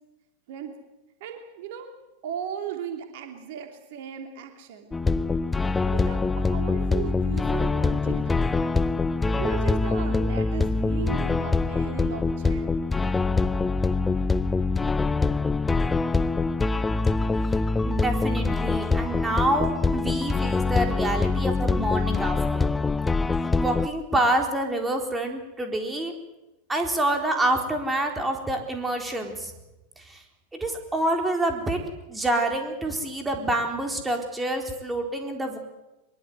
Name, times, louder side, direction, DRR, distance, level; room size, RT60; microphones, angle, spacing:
voice 1, 1.2-1.9 2.2-4.9 5.8-8.9 9.4-12.8, right 9 dB, 50° right, 4 dB, 3.0 m, -36 dB
sound 1, 4.9-23.9, left 3 dB, 10° left, 0.7 m, -24 dB
voice 2, 17.8-22.7 23.6-26.1 26.7-29.5 30.0-30.2 30.5-31.8 32.1-35.6, right 1 dB, 10° right, 3 dB, 4.0 m, -27 dB
23.0 x 22.5 x 8.0 m, 0.99 s
figure-of-eight pair, 90°, 0 cm